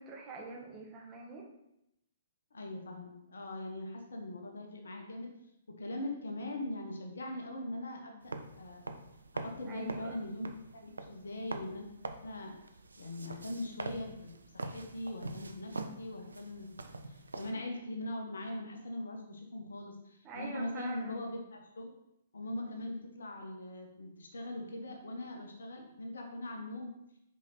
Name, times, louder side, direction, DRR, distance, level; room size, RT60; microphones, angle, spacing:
voice 1, 0.0-1.4 9.7-10.2 20.2-21.2, right 3 dB, 25° right, -1 dB, 1.4 m, -45 dB
voice 2, 2.5-5.3 5.7-8.8 9.3-11.9 12.2-12.5 13.0-16.8 17.1-21.9 22.3-26.9, left 1 dB, 70° left, 2 dB, 1.2 m, -41 dB
sound 1, 8.2-17.5, right 3 dB, 75° right, 0.6 m, -44 dB
5.4 x 5.1 x 4.1 m, 0.84 s
figure-of-eight pair, 120°, 0 cm